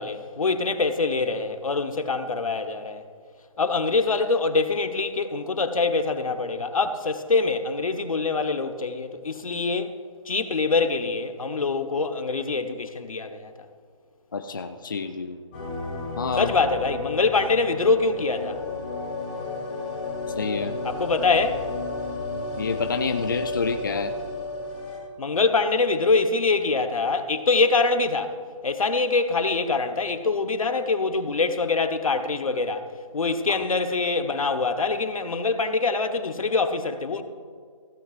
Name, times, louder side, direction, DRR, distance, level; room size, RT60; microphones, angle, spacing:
voice 1, 0.0-3.0 3.6-10.0 10.3-13.5 16.4-18.6 20.8-21.7 25.2-28.4 28.6-32.9 33.1-37.2, left 3 dB, 85° left, 1.2 m, -24 dB
voice 2, 14.3-15.4 16.2-16.5 20.4-20.8 22.6-24.1 33.5-33.6, left 5 dB, 40° left, 0.5 m, -28 dB
sound 1, 15.5-25.0, left 3 dB, 15° left, 2.4 m, -32 dB
16.0 x 15.0 x 2.5 m
hypercardioid pair, 175°, 17 cm